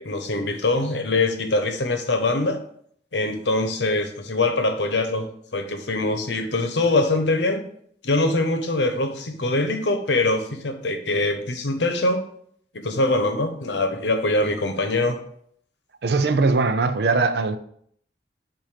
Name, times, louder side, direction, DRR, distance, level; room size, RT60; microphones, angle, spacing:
voice 1, 0.0-2.6 3.1-7.6 8.0-12.2 12.7-15.2, left 2 dB, 90° left, 0.9 m, -23 dB
voice 2, 16.0-17.6, right 3 dB, 65° right, 0.5 m, -20 dB
7.2 x 2.6 x 5.0 m
head